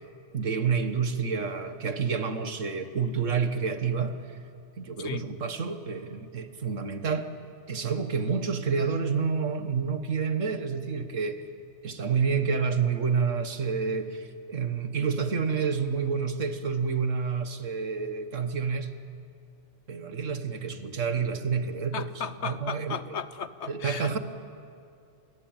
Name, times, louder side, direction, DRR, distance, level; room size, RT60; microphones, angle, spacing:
voice 1, 0.3-4.2 4.8-7.3 7.7-11.4 11.8-18.9 19.9-23.0 23.7-24.2, right 5 dB, 80° right, 9 dB, 1.8 m, -29 dB
voice 2, 21.9-24.2, left 7 dB, 65° left, 13 dB, 1.2 m, -35 dB
28.5 x 21.0 x 9.0 m, 2.4 s
omnidirectional pair, 1.3 m